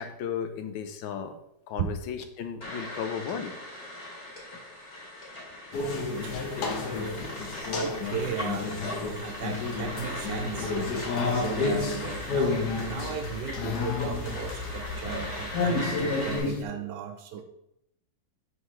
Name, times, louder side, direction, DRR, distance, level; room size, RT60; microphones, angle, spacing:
voice 1, 0.0-1.3 1.7-3.6, left 7 dB, 80° left, 8 dB, 1.4 m, -34 dB
sound 1, 2.6-16.4, left 1 dB, 35° left, 2.4 m, -39 dB
sound 2, 5.7-16.6, left 3 dB, 60° left, 1.3 m, -31 dB
voice 2, 6.1-6.5 7.7-8.7 9.0-17.4, right 7 dB, 70° right, 7 dB, 1.1 m, -36 dB
6.2 x 5.6 x 3.1 m, 0.80 s
omnidirectional pair, 2.1 m